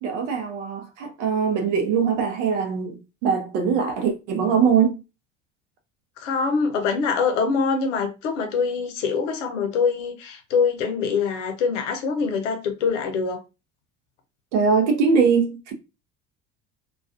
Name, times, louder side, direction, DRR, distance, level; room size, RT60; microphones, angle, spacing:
voice 1, 0.0-4.9 14.5-15.7, right 6 dB, 75° right, 0.7 m, -22 dB
voice 2, 6.2-13.4, left 5 dB, 80° left, 0.6 m, -24 dB
2.3 x 2.3 x 2.3 m
hypercardioid pair, 65°, 36 cm